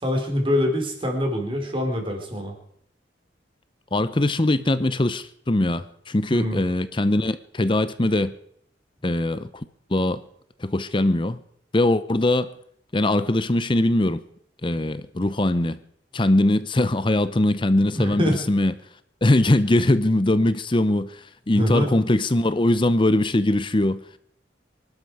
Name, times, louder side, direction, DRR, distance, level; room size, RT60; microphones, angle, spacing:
voice 1, 0.0-2.5 6.3-6.6 18.0-18.4 21.5-21.9, left 1 dB, 30° right, 3 dB, 4.2 m, -24 dB
voice 2, 3.9-8.4 9.0-9.6 9.9-10.2 10.6-11.4 11.7-12.5 12.9-14.2 14.6-15.8 16.1-18.7 19.2-21.2 21.5-24.0, left 1 dB, 25° left, 13 dB, 0.7 m, -21 dB
25.0 x 12.0 x 4.8 m, 0.68 s
head